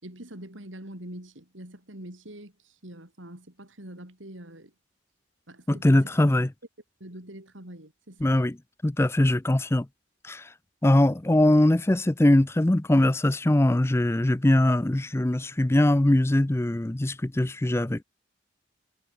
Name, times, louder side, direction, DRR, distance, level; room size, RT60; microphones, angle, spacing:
voice 1, 0.0-4.7 5.5-6.2 7.0-8.3, right 1 dB, 80° right, 5.2 m, -44 dB
voice 2, 5.7-6.5 8.2-8.6 8.8-9.9 10.2-10.4 10.8-18.0, left 1 dB, 15° left, 0.5 m, -21 dB
head